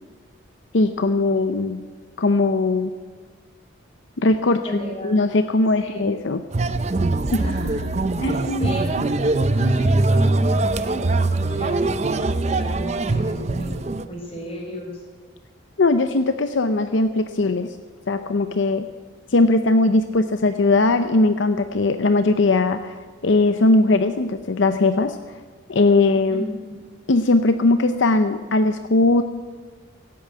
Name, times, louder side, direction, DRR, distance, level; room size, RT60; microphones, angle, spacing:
voice 1, 0.7-1.8 2.2-2.9 4.2-4.6 5.0-6.4 8.2-8.8 15.8-17.8 18.1-18.9 19.3-23.0 23.2-25.2 25.7-26.4 27.1-29.2, left 2 dB, 70° left, 9 dB, 0.6 m, -19 dB
voice 2, 4.4-5.3 5.8-6.1 7.4-9.0 9.5-13.7 14.1-15.0 26.3-26.7, equal, 30° left, -1 dB, 4.6 m, -34 dB
sound 1, 6.5-14.0, right 2 dB, 35° right, 0.5 m, -22 dB
15.5 x 8.6 x 9.2 m, 1.4 s
head